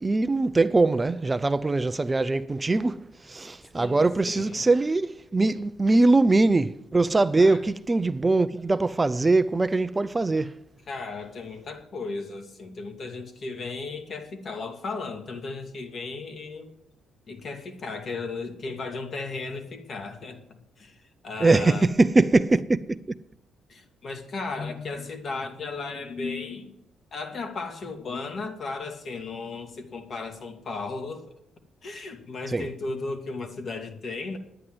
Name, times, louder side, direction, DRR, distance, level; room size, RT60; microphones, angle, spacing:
voice 1, 0.0-3.0 3.3-10.5 21.4-22.8 32.5-32.6, right 3 dB, 20° right, 0.5 m, -22 dB
voice 2, 3.7-4.6 7.2-7.6 10.9-16.7 17.3-20.4 20.8-20.9 21.2-21.9 23.7-26.7 27.1-31.3 31.8-34.4, left 3 dB, 50° left, 2.0 m, -35 dB
9.9 x 9.7 x 7.7 m
cardioid pair, 90°, 0 cm